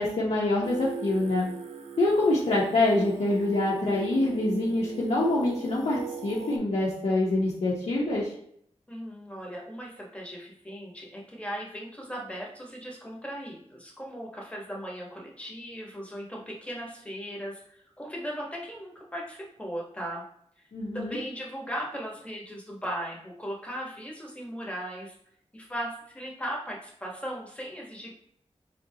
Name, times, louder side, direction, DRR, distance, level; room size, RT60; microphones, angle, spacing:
voice 1, 0.0-1.5 2.0-8.3 20.7-21.2, left 2 dB, 80° left, -7 dB, 0.8 m, -25 dB
Singing, 0.6-6.6, right 6 dB, 75° right, 0.5 m, -40 dB
voice 2, 8.9-20.2 20.9-25.1 25.5-28.1, equal, 10° left, -2 dB, 1.2 m, -37 dB
4.0 x 3.5 x 2.8 m, 0.68 s
wide cardioid pair, 85°, 11 cm